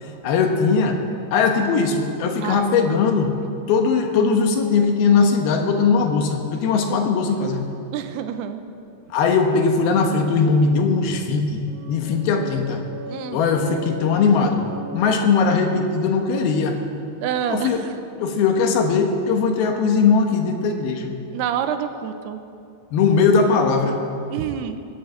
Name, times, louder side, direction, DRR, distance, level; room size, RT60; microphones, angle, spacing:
voice 1, 0.2-1.0 1.3-3.4 3.7-7.6 9.1-12.8 13.3-14.7 14.9-16.8 17.5-17.8 18.2-21.1 22.9-24.0, left 5 dB, 75° left, 4 dB, 3.1 m, -19 dB
voice 2, 7.9-8.6 13.1-13.4 17.2-17.9 21.3-22.4 24.3-24.8, right 9 dB, 90° right, 9 dB, 2.7 m, -27 dB
sound 1, 11.7-17.5, equal, 70° right, 3.9 m, -38 dB
21.5 x 8.2 x 7.8 m, 2.5 s
omnidirectional pair, 4.7 m